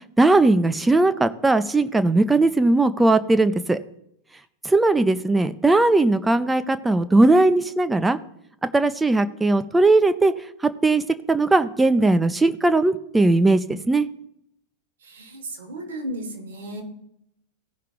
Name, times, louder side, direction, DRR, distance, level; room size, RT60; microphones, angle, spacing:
voice 1, 0.2-3.8 4.6-8.2 8.7-10.3 10.8-11.0 11.3-14.1, right 2 dB, 10° right, 12 dB, 0.6 m, -18 dB
voice 2, 15.0-16.8, right 1 dB, 65° right, 2 dB, 2.5 m, -34 dB
16.5 x 5.6 x 3.7 m, 0.75 s
figure-of-eight pair, 90°, 0 cm